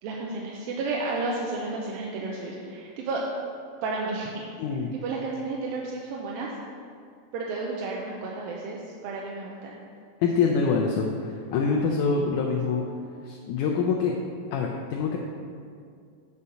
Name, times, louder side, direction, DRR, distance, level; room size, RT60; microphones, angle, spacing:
voice 1, 0.0-3.2 3.8-4.5 4.9-6.5 7.3-9.8, right 3 dB, 85° right, -2 dB, 2.4 m, -32 dB
voice 2, 4.6-4.9 10.2-12.8 13.2-14.1 14.5-15.2, left 5 dB, 80° left, -1 dB, 1.8 m, -25 dB
8.4 x 5.2 x 5.6 m, 2.3 s
omnidirectional pair, 4.1 m